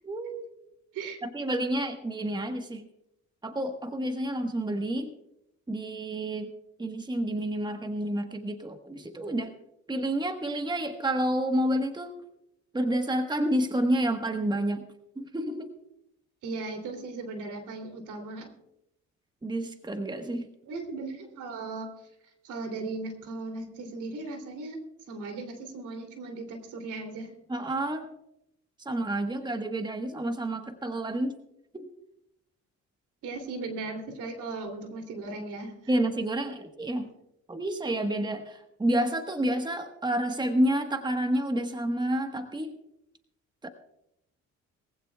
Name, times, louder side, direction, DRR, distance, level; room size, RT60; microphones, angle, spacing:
voice 1, 0.0-0.7 1.2-2.9 3.4-5.1 5.7-6.5 6.8-9.5 9.9-12.1 12.7-14.8 15.2-15.7 19.4-20.5 27.5-28.1 28.8-31.4 31.7-31.9 35.9-37.1 37.5-42.8 43.6-43.7, right 1 dB, 15° right, 6 dB, 1.3 m, -29 dB
voice 2, 16.4-18.5 20.6-21.9 22.4-27.3 33.2-35.7, right 3 dB, 85° right, 5 dB, 3.0 m, -37 dB
22.0 x 15.5 x 2.3 m, 0.82 s
cardioid pair, 90°, 30 cm